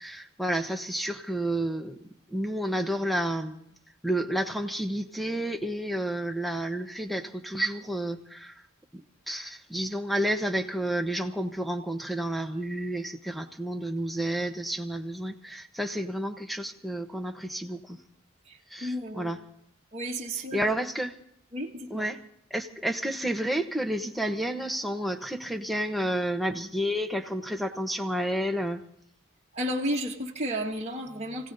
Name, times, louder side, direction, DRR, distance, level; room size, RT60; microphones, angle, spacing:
voice 1, 0.0-2.0 2.3-3.7 4.0-8.6 8.9-18.0 18.7-19.4 20.5-21.2 21.9-22.2 22.5-28.8, right 1 dB, ahead, 6 dB, 1.0 m, -30 dB
voice 2, 18.5-19.3 19.9-20.7 21.5-22.0 29.5-31.5, equal, 30° right, -3 dB, 1.5 m, -33 dB
29.0 x 17.0 x 2.7 m, 0.71 s
head